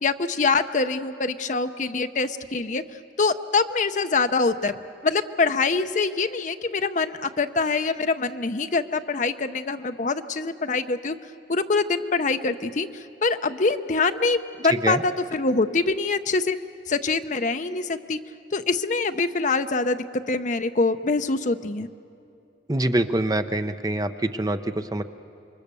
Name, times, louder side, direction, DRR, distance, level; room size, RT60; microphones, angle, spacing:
voice 1, 0.0-2.8 3.2-11.2 11.5-12.9 13.2-16.6 16.9-18.2 18.5-20.0 20.3-21.9, left 3 dB, 45° left, 9 dB, 0.7 m, -24 dB
voice 2, 22.7-25.0, right 1 dB, 20° right, 9 dB, 0.7 m, -25 dB
27.0 x 22.5 x 6.9 m, 2.6 s
head